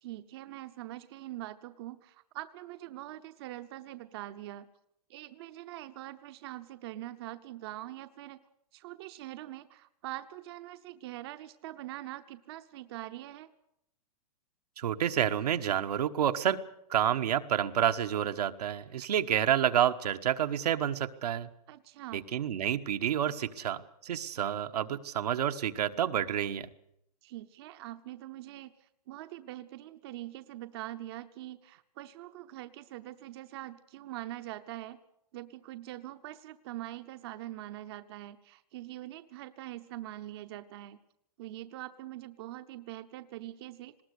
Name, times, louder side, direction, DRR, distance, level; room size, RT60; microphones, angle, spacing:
voice 1, 0.0-4.7 5.1-8.4 8.7-13.5 21.7-22.2 27.2-35.0 35.3-41.0 41.4-44.0, right 15 dB, 40° right, 10 dB, 0.8 m, -43 dB
voice 2, 14.8-16.6 16.9-21.5 22.1-26.7, right 10 dB, 80° right, 7 dB, 1.3 m, -29 dB
20.0 x 17.5 x 8.4 m, 0.75 s
hypercardioid pair, 160°, 20 cm